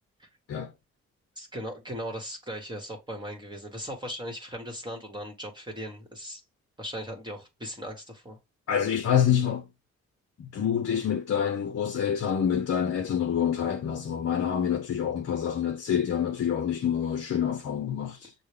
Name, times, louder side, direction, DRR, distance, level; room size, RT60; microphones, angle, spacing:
voice 1, 1.4-6.4 6.8-8.4, equal, 15° right, 1.3 m, -38 dB
voice 2, 8.7-9.7 10.4-18.3, left 8 dB, 50° left, 0.7 m, -27 dB
6.2 x 2.2 x 3.2 m
supercardioid pair, 55°, 30 cm